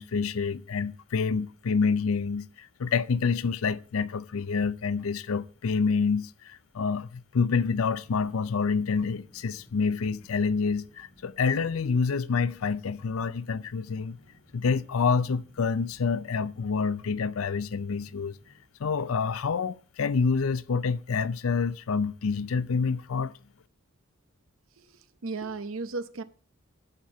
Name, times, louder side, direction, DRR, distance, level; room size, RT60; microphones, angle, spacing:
voice 1, 0.0-14.2 14.5-18.4 18.8-23.3, left 5 dB, 85° left, 0.5 m, -27 dB
sound 1, 8.0-18.6, left 1 dB, 55° left, 5.6 m, -58 dB
voice 2, 25.2-26.2, right 3 dB, 75° right, 0.8 m, -34 dB
11.0 x 4.4 x 6.7 m
head